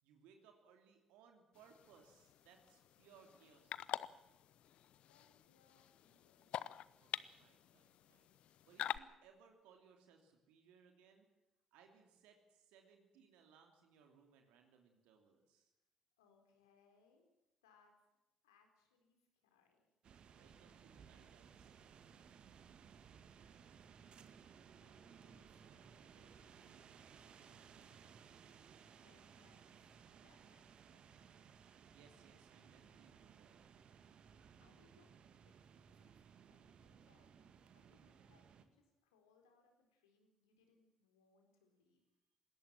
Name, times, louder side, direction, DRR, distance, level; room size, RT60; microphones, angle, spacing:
voice 1, 0.0-4.1 7.0-11.3 11.7-15.7 20.2-22.0 31.9-33.6, right 6 dB, 70° right, 4 dB, 2.9 m, -67 dB
sound 1, 1.6-9.0, left 11 dB, 60° left, 0.7 m, -48 dB
voice 2, 5.0-6.5 16.2-17.3 17.6-17.9 18.4-19.9 24.8-26.8 27.2-28.4 29.0-29.9 30.2-31.2 34.6-35.1 35.4-35.5 35.9-36.1 36.4-42.0, left 5 dB, 80° left, 4 dB, 4.1 m, -74 dB
sound 2, 20.0-38.6, right 7 dB, 55° right, 1.9 m, -61 dB
21.0 x 18.0 x 7.5 m, 0.97 s
hypercardioid pair, 45°, 2 cm